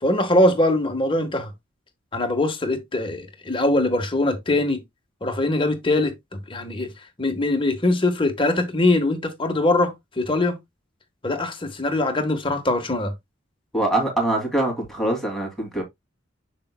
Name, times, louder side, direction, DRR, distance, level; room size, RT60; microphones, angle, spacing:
voice 1, 0.0-1.5 2.1-4.8 5.2-6.9 7.2-10.6 11.2-13.1, left 2 dB, 25° left, 1.3 m, -22 dB
voice 2, 13.7-15.8, right 1 dB, ahead, 2.6 m, -23 dB
6.8 x 6.7 x 2.2 m
head